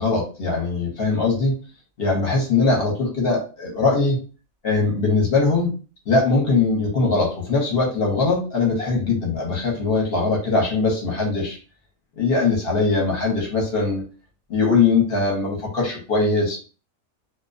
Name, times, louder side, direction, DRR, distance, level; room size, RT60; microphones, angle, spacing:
voice 1, 0.0-1.6 2.0-4.2 4.6-5.7 6.1-11.6 12.2-14.0 14.5-16.6, left 3 dB, 50° left, -1 dB, 0.9 m, -21 dB
2.3 x 2.1 x 2.5 m, 0.36 s
omnidirectional pair, 1.5 m